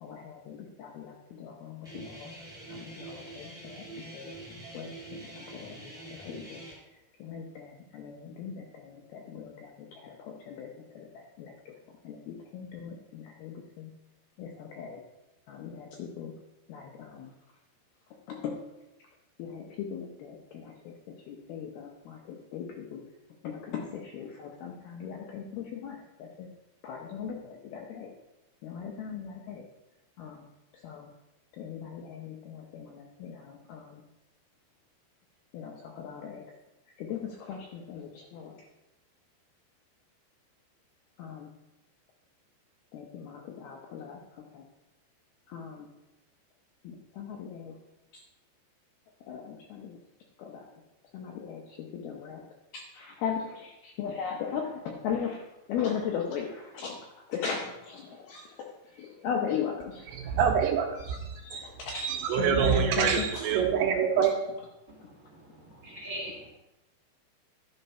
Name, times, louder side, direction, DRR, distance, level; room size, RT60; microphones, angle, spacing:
voice 1, 0.0-2.3 2.7-3.9 4.1-4.3 4.7-6.9 7.2-13.9 14.4-15.0 15.5-16.3 16.7-17.3 18.3-18.6 19.4-23.0 23.4-26.5 26.8-28.1 28.6-29.6 30.2-30.5 30.7-31.1 31.5-34.0 35.5-36.4 37.0-38.6 41.2-41.5 42.9-44.6 45.5-45.9 46.8-47.8 48.1-48.2 49.2-50.0 50.4-50.7 51.1-52.4 52.7-60.3 61.0-63.5 65.0-65.1 65.7-65.8, left 6 dB, 75° left, 0 dB, 2.3 m, -38 dB
Guitar, 1.8-6.7, right 2 dB, ahead, 3.1 m, -45 dB
voice 2, 60.2-61.2 62.2-64.3, right 7 dB, 80° right, 3 dB, 2.8 m, -25 dB
voice 3, 64.9-66.5, right 1 dB, 25° right, -3 dB, 2.5 m, -42 dB
11.5 x 5.6 x 5.5 m, 0.95 s
omnidirectional pair, 5.4 m